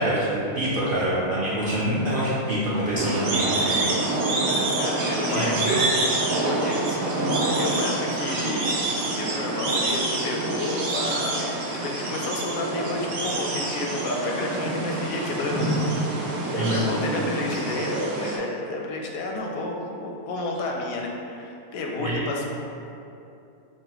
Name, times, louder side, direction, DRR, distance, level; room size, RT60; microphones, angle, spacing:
voice 1, 0.0-3.6 5.3-5.8 16.5-16.9 22.0-22.2, right 1 dB, 60° right, -9 dB, 0.6 m, -25 dB
sound 1, 2.9-18.4, right 2 dB, 90° right, 1.1 m, -26 dB
voice 2, 4.8-5.8 6.3-11.5 11.7-16.1 16.5-22.5, left 2 dB, 80° left, 0 dB, 1.0 m, -31 dB
5.5 x 2.1 x 2.9 m, 2.7 s
omnidirectional pair, 1.5 m